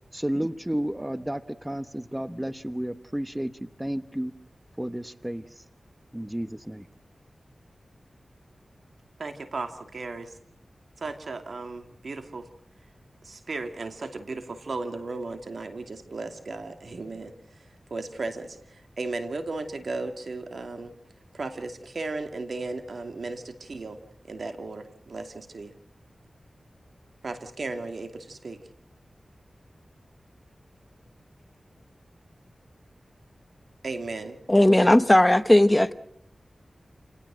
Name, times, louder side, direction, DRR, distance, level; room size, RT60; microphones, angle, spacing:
voice 1, 0.1-4.3 4.8-5.6 6.1-6.9, right 1 dB, 10° right, 1.1 m, -32 dB
voice 2, 9.2-10.3 11.0-12.5 13.2-17.3 17.9-18.6 19.0-20.9 21.3-24.0 24.3-25.7 27.2-28.6 33.8-34.4 34.6-34.8, right 3 dB, 70° right, 2.6 m, -35 dB
voice 3, 34.5-35.9, left 1 dB, 15° left, 1.1 m, -17 dB
29.0 x 18.0 x 6.3 m
cardioid pair, 55°, 0 cm